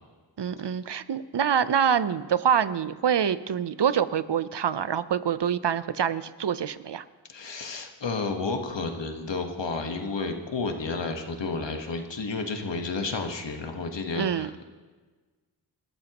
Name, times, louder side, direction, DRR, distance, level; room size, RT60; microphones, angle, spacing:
voice 1, 0.4-7.0 14.1-14.5, right 8 dB, 75° right, 14 dB, 0.7 m, -26 dB
voice 2, 7.3-14.6, left 4 dB, 90° left, 4 dB, 1.4 m, -31 dB
27.5 x 13.5 x 3.0 m, 1.4 s
wide cardioid pair, 70°, 42 cm